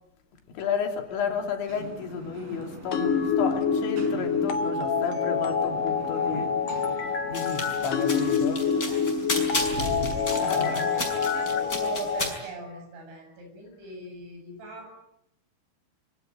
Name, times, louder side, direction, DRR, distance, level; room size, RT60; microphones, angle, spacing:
voice 1, 0.6-8.7 9.7-11.0, left 6 dB, 85° left, 3 dB, 5.4 m, -32 dB
sound 1, 1.7-12.1, right 2 dB, 50° right, 6.7 m, -44 dB
sound 2, 2.9-12.3, left 6 dB, 50° left, 3.3 m, -26 dB
sound 3, 7.3-12.3, left 2 dB, 20° left, 5.7 m, -33 dB
voice 2, 7.8-9.1 10.2-14.9, right 3 dB, 85° right, 4 dB, 10.0 m, -41 dB
25.0 x 24.0 x 9.3 m, 0.82 s
omnidirectional pair, 5.1 m